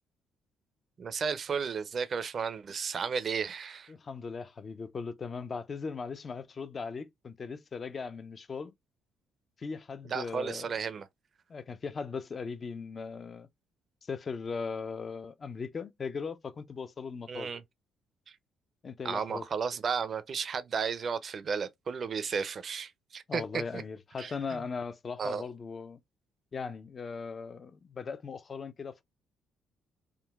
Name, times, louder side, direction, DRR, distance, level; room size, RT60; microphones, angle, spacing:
voice 1, 1.0-3.9 10.1-11.1 17.3-17.6 18.3-18.4 19.0-23.8 24.2-24.6 25.2-25.4, right 6 dB, 50° right, 0.4 m, -33 dB
voice 2, 3.9-8.7 9.6-10.7 11.5-13.5 14.0-17.5 18.8-19.5 23.3-26.0 26.5-29.0, left 5 dB, 45° left, 0.4 m, -38 dB
3.7 x 2.2 x 2.2 m
hypercardioid pair, 50°, 0 cm